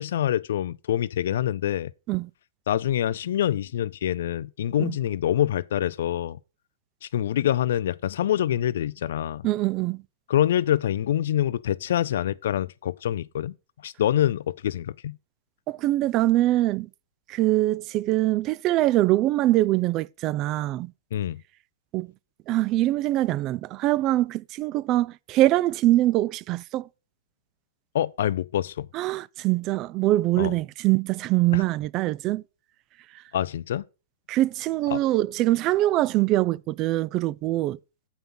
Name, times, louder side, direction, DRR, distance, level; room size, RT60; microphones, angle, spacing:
voice 1, 0.0-1.9 2.7-6.4 7.0-9.4 10.3-13.5 13.8-15.2 21.1-21.4 27.9-28.9 30.4-30.5 31.5-31.6 33.3-33.8 34.9-35.0, left 11 dB, 70° left, 0.3 m, -25 dB
voice 2, 9.4-10.0 15.7-16.9 17.3-20.9 21.9-22.1 22.5-26.9 28.9-32.4 34.3-37.8, right 16 dB, 35° right, 0.3 m, -23 dB
7.2 x 5.7 x 5.4 m
hypercardioid pair, 125°, 0 cm